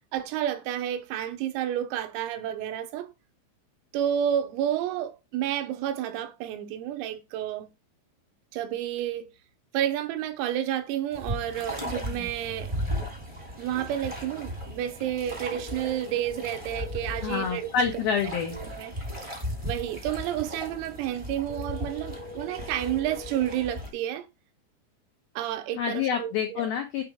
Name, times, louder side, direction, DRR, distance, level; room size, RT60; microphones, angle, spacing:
voice 1, 0.0-3.1 3.9-7.7 8.5-9.3 9.7-12.7 13.6-18.0 18.6-18.9 19.6-24.3 25.4-26.7, right 11 dB, 85° right, 3.6 m, -30 dB
sound 1, 11.1-23.9, equal, 25° right, 0.5 m, -37 dB
sound 2, 15.5-17.5 21.5-23.5, left 3 dB, 70° left, 2.4 m, -43 dB
voice 2, 17.2-18.6 25.8-27.0, left 7 dB, 90° left, 2.1 m, -27 dB
8.5 x 4.0 x 4.8 m
omnidirectional pair, 6.0 m